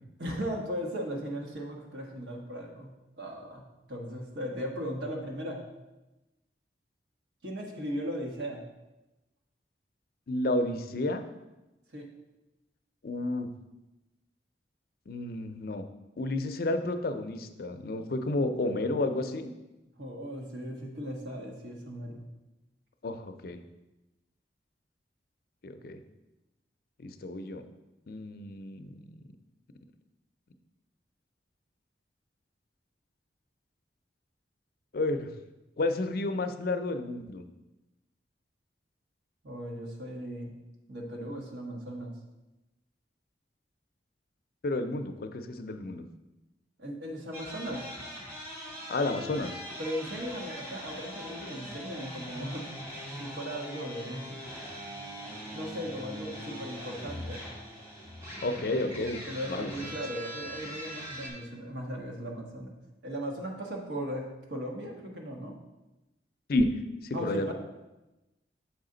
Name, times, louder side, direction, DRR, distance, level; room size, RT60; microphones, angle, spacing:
voice 1, 0.2-5.6 7.4-8.6 11.9-12.1 20.0-22.3 39.4-40.5 40.9-42.1 46.8-47.8 49.8-52.7 53.2-54.4 55.5-57.5 59.3-62.7 63.0-65.5 67.1-67.5, equal, 80° right, 0 dB, 1.2 m, -37 dB
voice 2, 10.3-11.2 13.0-13.5 15.1-15.8 16.2-19.5 23.0-23.6 25.6-26.0 27.0-27.6 28.1-28.9 34.9-35.3 35.8-37.5 44.6-46.0 48.9-49.6 58.4-59.2 59.5-59.7 66.5-66.7 67.0-67.5, left 2 dB, 55° left, 8 dB, 0.5 m, -31 dB
sound 1, 47.3-61.3, equal, 15° right, 1.6 m, -41 dB
7.0 x 4.9 x 3.8 m, 1.0 s
head